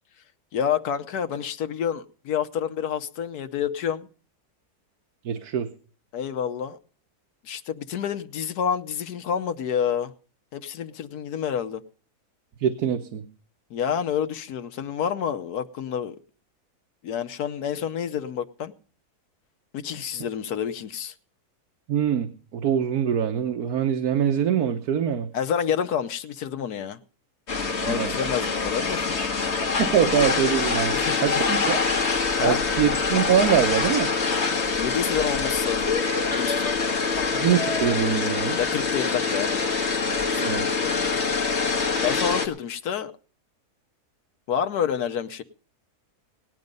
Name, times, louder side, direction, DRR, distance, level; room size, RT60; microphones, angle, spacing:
voice 1, 0.5-4.1 6.1-6.8 7.4-10.1 10.5-11.8 13.7-16.2 17.0-18.7 19.7-21.1 25.3-27.0 27.8-29.1 30.9-31.2 32.4-32.6 34.6-36.7 38.6-39.6 40.1-41.2 42.0-43.1 44.5-45.4, left 8 dB, 80° left, 1.4 m, -28 dB
voice 2, 5.2-5.7 12.6-13.2 21.9-25.3 27.8-28.1 29.8-30.9 31.2-31.8 32.4-34.1 37.3-38.6 40.4-40.7, right 8 dB, 75° right, 1.4 m, -24 dB
sound 1, 27.5-42.5, left 4 dB, 45° left, 1.8 m, -25 dB
18.0 x 10.5 x 5.3 m
omnidirectional pair, 1.6 m